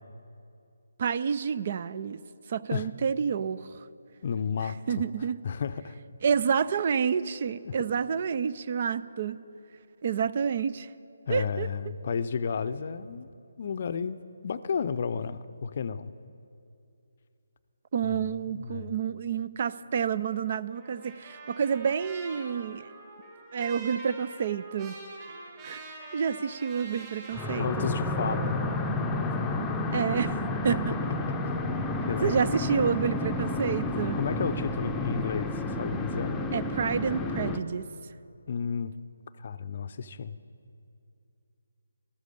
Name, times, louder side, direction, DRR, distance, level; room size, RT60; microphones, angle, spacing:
voice 1, 1.0-2.2 2.5-3.9 4.6-5.4 6.2-9.4 10.0-10.9 11.3-11.7 17.9-22.9 23.5-25.0 25.6-27.9 29.9-30.4 30.6-30.9 32.2-34.2 36.5-37.9, right 7 dB, 45° right, 16 dB, 0.4 m, -29 dB
voice 2, 4.2-5.1 5.4-6.0 7.7-7.8 11.3-13.3 13.6-14.2 14.4-16.1 18.0-18.9 27.6-28.9 29.3-29.4 30.7-30.8 31.6-32.5 34.1-36.4 38.5-39.0 39.4-40.4, left 6 dB, 45° left, 12 dB, 0.5 m, -32 dB
Trumpet, 20.7-27.5, right 3 dB, 20° right, 5.0 m, -45 dB
sound 1, 27.3-37.6, left 2 dB, 10° left, 0.7 m, -31 dB
14.0 x 13.0 x 6.8 m, 2.6 s
figure-of-eight pair, 150°, 0 cm